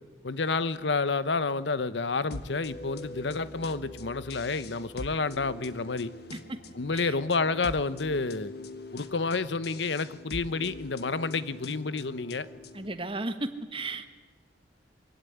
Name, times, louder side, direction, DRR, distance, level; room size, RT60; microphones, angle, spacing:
voice 1, 0.2-6.1 6.7-8.5 8.9-12.5, left 4 dB, 75° left, 15 dB, 0.9 m, -29 dB
sound 1, 2.3-13.0, left 2 dB, 60° left, 1.5 m, -43 dB
voice 2, 12.7-14.1, right 2 dB, 30° right, 10 dB, 1.4 m, -34 dB
24.0 x 16.5 x 9.5 m, 1.2 s
head